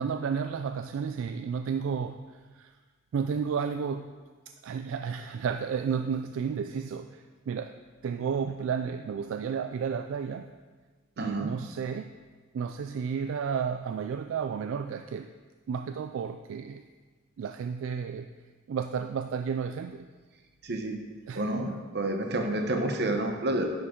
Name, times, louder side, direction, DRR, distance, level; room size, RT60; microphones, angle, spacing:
voice 1, 0.0-2.7 3.1-4.1 4.5-7.7 8.0-10.5 11.2-12.1 12.5-15.3 15.7-16.8 17.4-18.3 18.7-20.0 21.3-21.4, right 6 dB, 70° right, 8 dB, 0.3 m, -32 dB
voice 2, 11.2-11.5 20.6-21.0 21.3-23.7, right 1 dB, 55° right, 4 dB, 0.9 m, -29 dB
9.8 x 6.3 x 3.7 m, 1.4 s
head